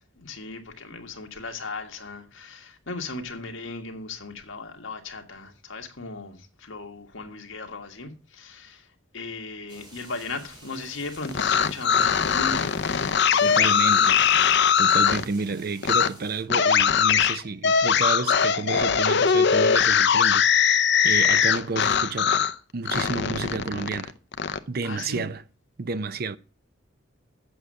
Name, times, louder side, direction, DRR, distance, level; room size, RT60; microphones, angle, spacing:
voice 1, 0.2-12.8 13.3-14.1 21.1-21.3 24.8-25.3, left 3 dB, 75° left, 1.7 m, -37 dB
sound 1, 9.7-16.4, right 1 dB, 25° right, 3.7 m, -49 dB
sound 2, 11.2-15.2 15.8-16.1 16.5-22.5 22.9-24.6, left 7 dB, 60° left, 0.6 m, -21 dB
voice 2, 13.4-14.2 14.8-22.3 22.7-24.1 24.7-25.4 25.8-26.4, right 4 dB, 50° right, 0.6 m, -31 dB
7.9 x 6.6 x 7.5 m
head